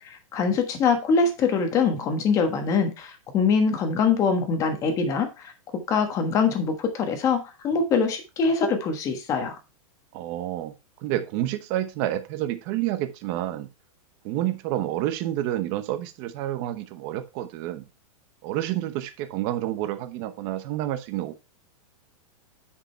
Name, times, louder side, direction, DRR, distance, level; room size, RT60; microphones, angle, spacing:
voice 1, 0.0-5.5 5.9-9.6, left 5 dB, 20° left, 1.3 m, -23 dB
voice 2, 10.1-10.7 11.0-13.7 14.2-17.9 18.4-21.4, right 13 dB, 30° right, 0.9 m, -29 dB
9.9 x 5.1 x 4.4 m
supercardioid pair, 175°, 18 cm